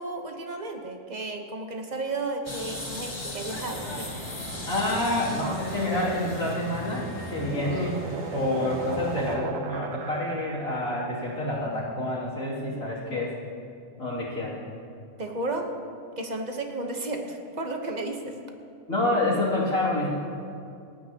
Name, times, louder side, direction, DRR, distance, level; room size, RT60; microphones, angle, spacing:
voice 1, 0.0-4.2 8.5-8.7 15.2-15.7 16.2-18.4, right 2 dB, 35° right, 3 dB, 1.2 m, -33 dB
sound 1, 2.5-7.6, left 2 dB, 20° left, 1.1 m, -39 dB
sound 2, 3.5-9.3, equal, 10° right, 2.4 m, -39 dB
voice 2, 4.7-8.0 8.3-13.3 14.0-14.5 18.9-20.1, left 1 dB, 75° left, -6 dB, 3.3 m, -28 dB
sound 3, 6.7-11.2, right 8 dB, 70° right, 1.1 m, -39 dB
28.0 x 9.8 x 3.0 m, 2.5 s
omnidirectional pair, 1.5 m